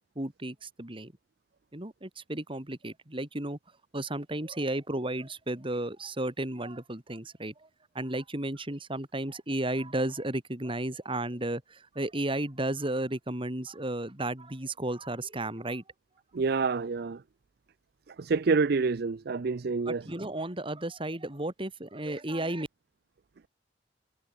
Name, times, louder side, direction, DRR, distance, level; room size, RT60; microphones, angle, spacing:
voice 1, 0.1-1.1 1.7-3.6 3.9-7.7 7.9-15.8 19.9-22.7, right 1 dB, 30° right, 3.0 m, -33 dB
voice 2, 16.3-17.2 18.1-20.1, right 4 dB, 60° right, 0.5 m, -27 dB
head